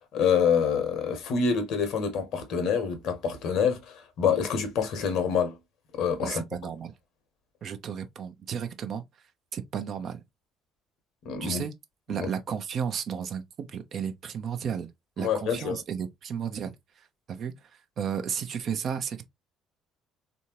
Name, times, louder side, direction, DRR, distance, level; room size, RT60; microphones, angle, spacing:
voice 1, 0.0-5.6 6.0-6.4 11.2-11.6 12.2-12.3 15.2-15.8, left 6 dB, 55° left, 0.9 m, -26 dB
voice 2, 6.2-7.0 7.6-9.0 9.5-10.2 11.4-11.7 12.1-14.9 15.2-17.7 18.0-19.2, right 7 dB, 45° right, 0.6 m, -33 dB
3.5 x 2.6 x 2.7 m
figure-of-eight pair, 50°, 0 cm